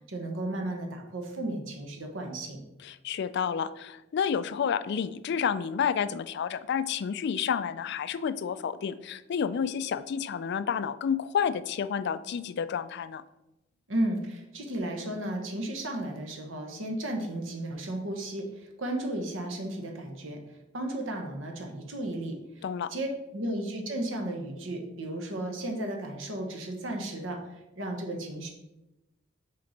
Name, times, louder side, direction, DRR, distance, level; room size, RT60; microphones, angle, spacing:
voice 1, 0.1-2.6 13.9-20.4 20.7-22.6 22.9-23.1 23.3-28.5, right 1 dB, 75° right, 3 dB, 1.2 m, -34 dB
voice 2, 2.8-13.2 22.6-22.9, left 7 dB, 60° left, 14 dB, 0.3 m, -30 dB
6.4 x 4.4 x 4.2 m, 0.94 s
head